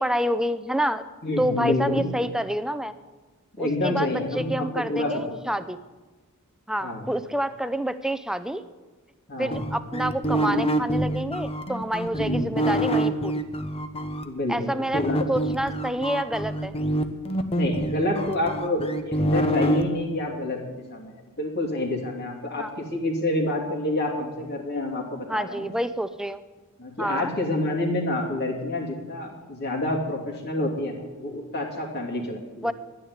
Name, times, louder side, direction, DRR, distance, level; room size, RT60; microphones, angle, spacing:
voice 1, 0.0-1.0 1.4-2.9 3.6-5.8 6.7-8.6 9.4-13.4 14.5-15.0 15.3-16.8 22.6-22.7 25.3-26.4 27.0-27.3 32.6-32.7, equal, 5° right, 12 dB, 0.5 m, -28 dB
voice 2, 1.2-2.1 3.6-5.4 6.8-7.0 9.3-9.6 12.2-12.6 14.2-15.2 17.5-25.7 26.8-32.7, left 1 dB, 50° left, -1 dB, 2.9 m, -28 dB
sound 1, 9.5-14.2 14.9-19.8, right 1 dB, 25° left, 0.9 m, -26 dB
11.0 x 9.9 x 9.6 m, 1.2 s
head